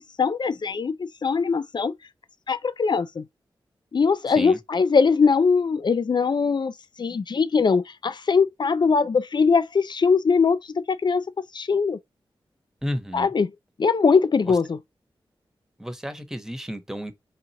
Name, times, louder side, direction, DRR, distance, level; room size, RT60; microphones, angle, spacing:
voice 1, 0.2-1.9 2.5-3.2 3.9-6.7 7.0-11.2 11.5-12.0 13.1-13.5 13.8-14.8, left 5 dB, 50° left, 0.5 m, -21 dB
voice 2, 4.3-4.6 12.8-13.3 14.4-14.6 15.8-17.1, equal, 5° right, 1.0 m, -32 dB
4.2 x 2.5 x 2.8 m
cardioid pair, 45°, 9 cm